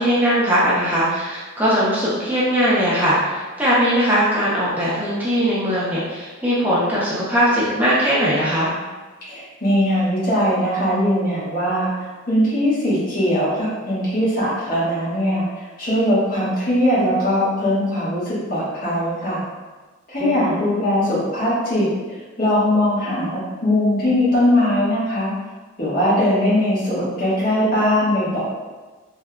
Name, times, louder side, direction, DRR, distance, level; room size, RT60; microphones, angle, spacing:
voice 1, 0.0-8.7 20.2-20.6, equal, 10° right, -9 dB, 0.5 m, -20 dB
voice 2, 9.3-11.9 12.3-15.5 15.8-19.4 20.1-21.9 22.4-25.3 25.8-28.4, left 1 dB, 40° left, -9 dB, 1.2 m, -20 dB
3.6 x 3.2 x 2.2 m, 1.3 s
head